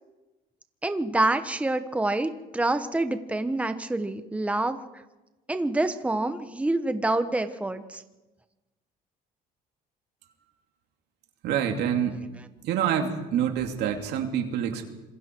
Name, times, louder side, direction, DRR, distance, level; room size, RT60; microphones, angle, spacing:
voice 1, 0.8-4.8 5.5-8.0 12.4-12.5, right 2 dB, 10° right, 9 dB, 1.1 m, -27 dB
voice 2, 11.4-12.2 12.6-14.8, right 9 dB, 80° right, 4 dB, 2.6 m, -26 dB
26.0 x 22.5 x 4.6 m, 1.1 s
cardioid pair, 110°, 17 cm